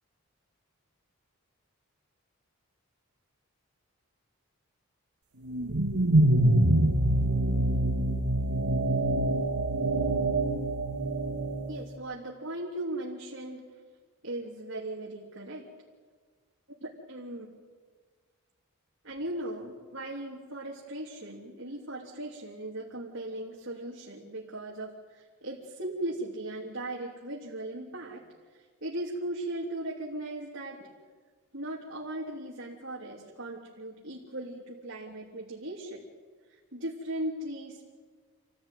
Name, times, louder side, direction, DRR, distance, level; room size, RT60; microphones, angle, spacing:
sound 1, 5.5-11.8, right 1 dB, 85° right, 2.0 m, -25 dB
voice 1, 11.7-13.6 14.2-15.7 16.8-17.5 19.0-28.2 28.5-30.9 31.5-36.0 36.5-37.8, right 1 dB, 60° right, -3 dB, 3.1 m, -38 dB
28.0 x 16.0 x 9.3 m, 1.5 s
head